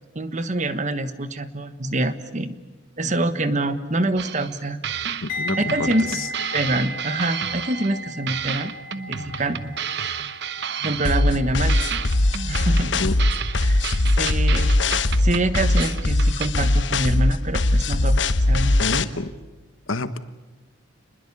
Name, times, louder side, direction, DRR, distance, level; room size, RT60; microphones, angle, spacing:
voice 1, 0.1-2.6 3.0-5.2 5.6-8.7 9.1-9.8 10.0-10.3 10.8-11.8 12.4-13.0 13.6-13.8 14.2-14.8 15.2-19.3, right 2 dB, 35° right, 11 dB, 1.3 m, -26 dB
sound 1, 4.2-4.6 4.8-8.0 8.3-11.4 11.7-16.5, right 7 dB, 55° right, 1.0 m, -32 dB
voice 2, 5.2-5.8 6.1-6.3 13.0-13.2 18.8-19.4 19.9-20.2, left 2 dB, 85° left, 12 dB, 1.4 m, -28 dB
sound 2, 5.3-14.3 14.5-14.8, equal, 45° left, 2.8 m, -36 dB
sound 3, 11.0-19.0, left 2 dB, 60° left, 1.0 m, -20 dB
29.0 x 21.0 x 8.5 m, 1.2 s
head